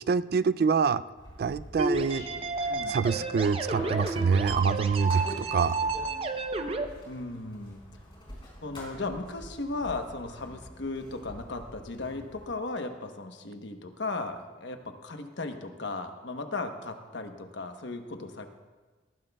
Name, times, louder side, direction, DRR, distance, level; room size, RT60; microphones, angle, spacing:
voice 1, 0.1-1.0 1.4-2.3 2.6-5.8, right 5 dB, 55° right, 16 dB, 0.3 m, -26 dB
sound 1, 1.2-12.5, equal, 25° left, 4.1 m, -46 dB
sound 2, 1.8-6.8, right 3 dB, 30° right, 0.7 m, -31 dB
voice 2, 2.7-3.0 7.1-7.8 8.6-18.5, left 3 dB, 75° left, 6 dB, 1.0 m, -36 dB
19.0 x 15.0 x 2.3 m, 1.3 s
head